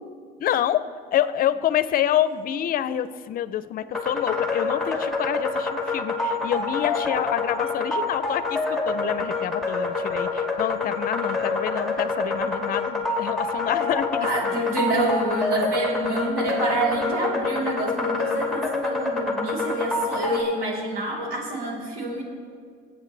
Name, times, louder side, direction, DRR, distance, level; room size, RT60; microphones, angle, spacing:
voice 1, 0.4-0.8 1.1-14.3, left 11 dB, 60° left, 14 dB, 0.5 m, -27 dB
sound 1, 3.9-20.4, left 3 dB, ahead, 2.0 m, -27 dB
voice 2, 14.2-22.2, right 2 dB, 60° right, -3 dB, 3.5 m, -27 dB
22.0 x 8.2 x 3.3 m, 2.1 s
cardioid pair, 110°, 17 cm